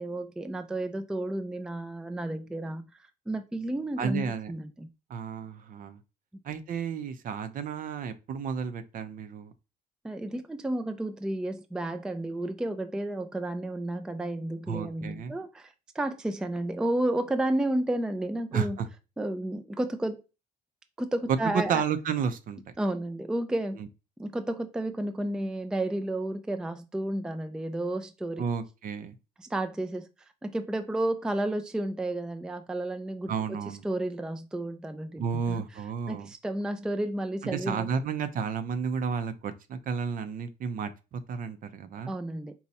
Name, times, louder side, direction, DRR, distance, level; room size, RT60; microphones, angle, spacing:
voice 1, 0.0-2.8 3.3-4.9 10.0-18.8 19.2-20.2 21.0-21.8 22.8-23.8 24.2-28.5 29.4-30.1 30.4-33.3 33.7-35.6 36.1-37.9 42.1-42.5, right 1 dB, 5° right, 0.3 m, -32 dB
voice 2, 4.0-4.5 5.1-6.0 6.4-9.5 14.7-15.3 18.5-18.9 21.5-22.7 28.4-29.1 33.3-33.8 35.2-36.3 37.5-42.1, right 6 dB, 55° right, 0.6 m, -32 dB
4.1 x 2.3 x 4.0 m
cardioid pair, 110°, 17 cm